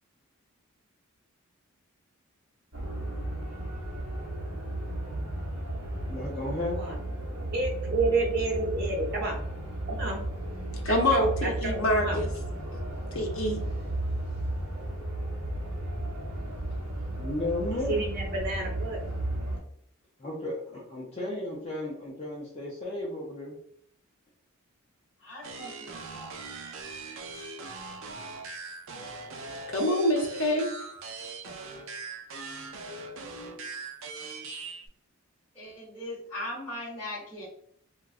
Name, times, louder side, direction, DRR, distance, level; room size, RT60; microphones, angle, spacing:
sound 1, 2.7-19.6, right 1 dB, 85° right, 0.9 m, -34 dB
voice 1, 6.0-6.9 17.1-18.1 20.2-23.5, left 1 dB, 30° left, -4 dB, 0.5 m, -34 dB
voice 2, 6.8-9.4 9.9-10.2 10.9-12.2 17.9-19.0, right 3 dB, 45° right, -2 dB, 0.9 m, -30 dB
voice 3, 10.8-12.3 13.1-13.6 29.7-30.7, left 1 dB, 65° left, 1 dB, 0.7 m, -25 dB
voice 4, 25.2-26.4 35.5-37.5, left 1 dB, 10° left, -12 dB, 1.0 m, -39 dB
sound 2, 25.4-34.9, right 3 dB, 60° right, 0.4 m, -41 dB
2.9 x 2.3 x 2.4 m, 0.68 s
head